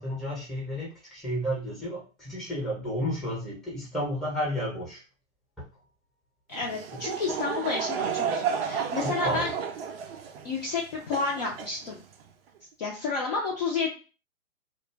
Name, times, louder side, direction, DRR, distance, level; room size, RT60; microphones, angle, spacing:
voice 1, 0.0-5.0 5.6-5.7 6.9-7.0 9.0-9.5, equal, ahead, -5 dB, 0.8 m, -32 dB
voice 2, 6.5-9.5 10.4-12.0 12.8-13.9, left 4 dB, 30° left, -2 dB, 0.5 m, -30 dB
Laughter / Crowd, 6.5-12.3, right 7 dB, 50° right, 0.4 m, -32 dB
2.4 x 2.0 x 3.2 m, 0.33 s
hypercardioid pair, 135°, 41 cm